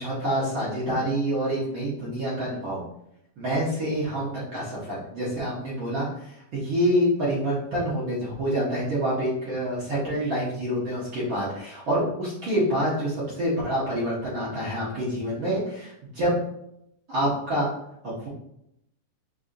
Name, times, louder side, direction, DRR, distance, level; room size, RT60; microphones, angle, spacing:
voice 1, 0.0-2.8 3.4-16.4 17.1-17.7 18.0-18.3, equal, 80° right, -8 dB, 1.1 m, -27 dB
6.8 x 2.6 x 2.5 m, 0.80 s
omnidirectional pair, 3.9 m